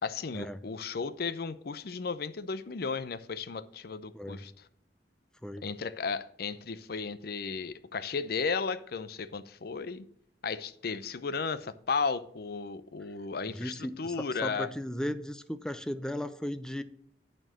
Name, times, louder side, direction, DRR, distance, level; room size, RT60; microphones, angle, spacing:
voice 1, 0.0-4.5 5.6-10.0 10.4-14.7, left 5 dB, 60° left, 0.6 m, -34 dB
voice 2, 13.5-16.8, equal, 5° left, 0.5 m, -36 dB
9.2 x 4.4 x 7.3 m
head